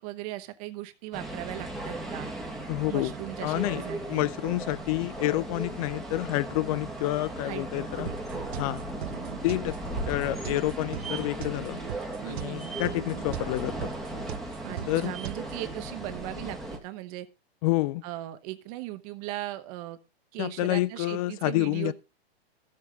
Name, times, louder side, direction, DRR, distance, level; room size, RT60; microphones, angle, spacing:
voice 1, 0.0-2.3 2.9-4.3 7.4-8.9 12.2-12.8 14.6-17.3 18.0-20.0 20.3-21.9, right 16 dB, 35° right, 0.9 m, -38 dB
sound 1, 1.1-16.8, right 1 dB, ahead, 1.5 m, -37 dB
voice 2, 2.7-3.1 3.4-8.1 8.6-8.8 9.4-9.8 10.1-11.8 12.2-13.9 14.9-15.2 17.6-18.0 20.4-21.9, left 18 dB, 35° left, 0.5 m, -28 dB
sound 2, 8.1-15.7, right 14 dB, 75° right, 0.5 m, -40 dB
13.5 x 7.6 x 3.9 m
hypercardioid pair, 145°, 32 cm